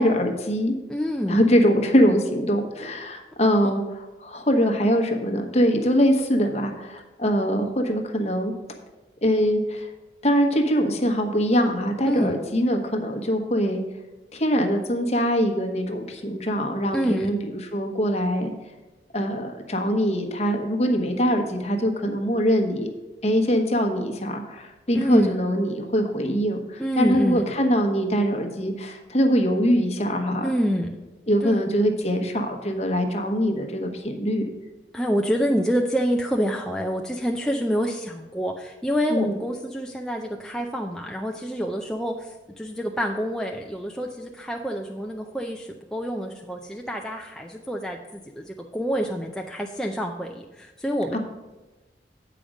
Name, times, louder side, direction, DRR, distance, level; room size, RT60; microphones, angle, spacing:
voice 1, 0.0-0.7 1.3-8.5 9.2-9.9 10.2-13.8 14.3-18.5 19.1-22.9 23.2-30.5 31.3-34.4 39.1-39.4 51.1-51.2, equal, 35° left, 3 dB, 1.1 m, -23 dB
voice 2, 0.9-1.4 12.1-12.3 16.9-17.3 24.9-25.4 26.8-27.4 30.4-30.9 31.4-31.7 34.9-51.2, equal, 5° left, 1 dB, 0.4 m, -27 dB
8.5 x 5.0 x 6.3 m, 1.2 s
head